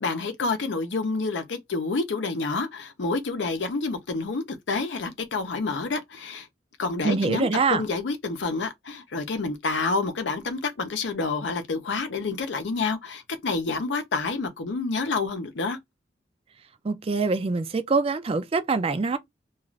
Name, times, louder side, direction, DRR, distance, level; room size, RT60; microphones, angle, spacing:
voice 1, 0.0-6.5 6.8-15.8, left 3 dB, 75° left, 0.6 m, -28 dB
voice 2, 7.0-7.8 16.8-19.2, right 4 dB, 30° right, 0.4 m, -24 dB
2.4 x 2.3 x 3.0 m
head